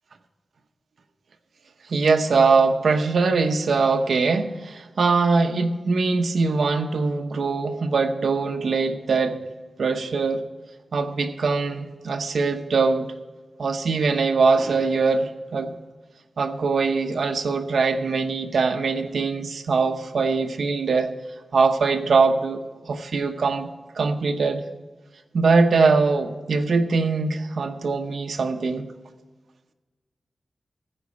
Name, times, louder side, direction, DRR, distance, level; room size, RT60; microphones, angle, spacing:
voice 1, 1.9-9.4 9.8-10.4 10.9-13.1 13.6-15.7 16.4-21.1 21.5-23.7 23.9-24.6 25.3-28.9, right 4 dB, 80° right, 5 dB, 0.8 m, -22 dB
15.0 x 5.2 x 8.3 m, 1.3 s
wide cardioid pair, 120°, 0 cm